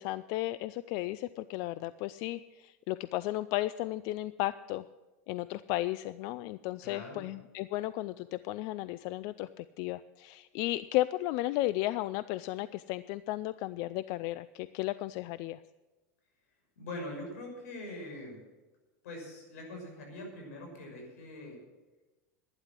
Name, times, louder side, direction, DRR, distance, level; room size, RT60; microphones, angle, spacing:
voice 1, 0.0-4.8 5.3-15.6, left 16 dB, 50° left, 16 dB, 0.3 m, -34 dB
voice 2, 6.8-7.2 16.8-18.4 19.0-21.6, left 1 dB, 80° left, 2 dB, 6.0 m, -43 dB
12.0 x 9.9 x 7.5 m, 1.2 s
supercardioid pair, 140°, 8 cm